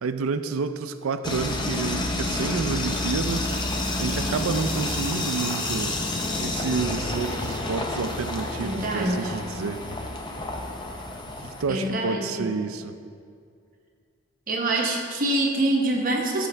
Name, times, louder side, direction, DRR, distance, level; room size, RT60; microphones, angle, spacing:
voice 1, 0.0-3.5 4.0-6.0 6.4-10.0 11.4-13.0, right 4 dB, 85° right, 10 dB, 0.4 m, -29 dB
sound 1, 1.2-11.6, left 2 dB, 20° left, 0.5 m, -29 dB
sound 2, 2.5-6.8, left 1 dB, 40° left, 2.0 m, -38 dB
voice 2, 8.6-9.3 11.7-12.5 14.5-16.5, right 1 dB, 40° right, 0 dB, 1.0 m, -25 dB
13.0 x 5.3 x 3.3 m, 2.3 s
head